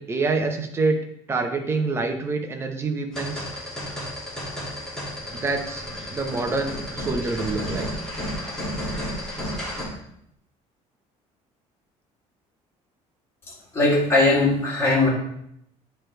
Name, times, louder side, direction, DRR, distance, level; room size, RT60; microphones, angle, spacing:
voice 1, 0.0-3.4 5.3-7.9, right 3 dB, 20° right, 4 dB, 0.8 m, -26 dB
sound 1, 3.1-9.8, equal, 5° left, 2.1 m, -32 dB
voice 2, 13.7-15.1, left 2 dB, 20° left, -5 dB, 2.2 m, -19 dB
9.8 x 3.4 x 4.5 m, 0.73 s
cardioid pair, 170°, 13 cm